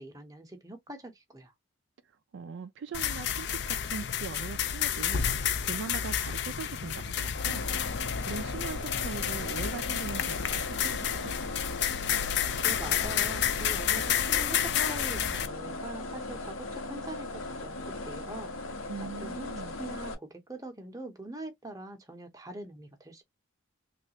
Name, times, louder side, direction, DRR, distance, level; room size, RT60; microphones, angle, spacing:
voice 1, 0.0-1.5 12.6-23.2, right 1 dB, 15° right, 0.7 m, -43 dB
voice 2, 2.3-7.6 8.3-11.4 18.9-19.8, right 5 dB, 60° right, 0.3 m, -41 dB
sound 1, 2.9-15.5, left 9 dB, 55° left, 0.4 m, -30 dB
sound 2, 7.3-20.1, left 2 dB, 80° left, 0.9 m, -38 dB
3.2 x 2.4 x 2.8 m
head